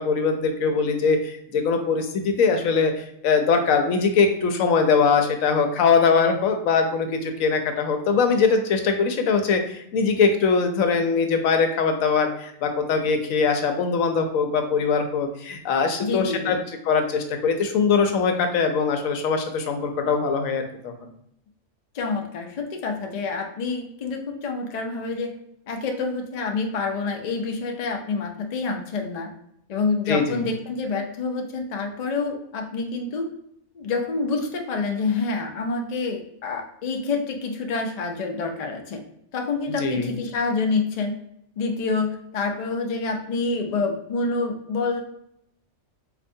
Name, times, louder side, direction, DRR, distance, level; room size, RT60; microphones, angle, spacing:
voice 1, 0.0-16.6 16.9-20.9 30.1-30.5 39.8-40.1, left 5 dB, 90° left, 6 dB, 1.0 m, -22 dB
voice 2, 16.0-16.6 21.9-25.3 25.7-29.3 29.7-33.3 33.7-39.0 39.3-41.2 41.6-45.0, left 4 dB, 60° left, 3 dB, 0.4 m, -27 dB
4.3 x 2.5 x 2.6 m, 0.77 s
omnidirectional pair, 1.3 m